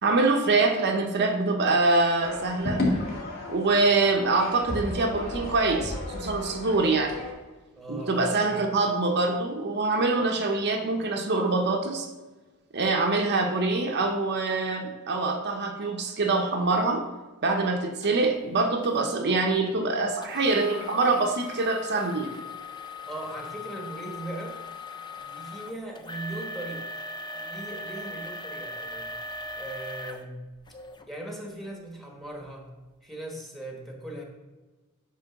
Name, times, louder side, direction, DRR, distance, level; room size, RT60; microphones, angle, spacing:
voice 1, 0.0-2.8 3.5-7.2 7.9-12.1 12.7-17.0 17.4-22.3, right 3 dB, 50° right, 3 dB, 0.7 m, -24 dB
sound 1, 2.2-7.3, left 1 dB, 45° left, 1.9 m, -33 dB
voice 2, 7.8-8.7 23.1-24.6 25.2-26.9 27.3-29.1 29.6-30.4 31.1-32.7 33.0-34.2, right 1 dB, ahead, 0 dB, 1.2 m, -39 dB
sound 2, 18.0-18.1 18.8-19.1 20.2-31.1 31.6-31.7 32.3-32.5, left 2 dB, 20° left, 0.5 m, -39 dB
9.1 x 3.3 x 5.8 m, 1.2 s
head